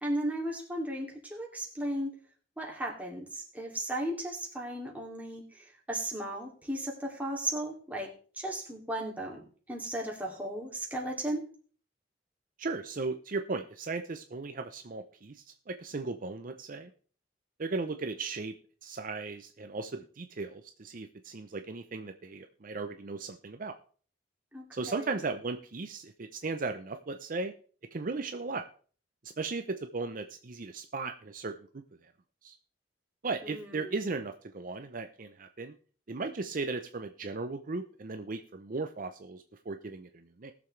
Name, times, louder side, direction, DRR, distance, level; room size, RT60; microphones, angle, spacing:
voice 1, 0.0-2.1 2.6-8.1 8.3-11.5 24.5-25.2 33.4-34.0, right 1 dB, 10° right, -1 dB, 2.6 m, -36 dB
voice 2, 12.6-16.9 17.6-18.5 18.8-23.7 24.7-27.5 27.9-28.6 29.4-31.8 32.4-32.5 33.2-35.7 36.1-40.5, right 3 dB, 50° right, 7 dB, 0.6 m, -36 dB
19.5 x 7.0 x 3.2 m, 0.43 s
head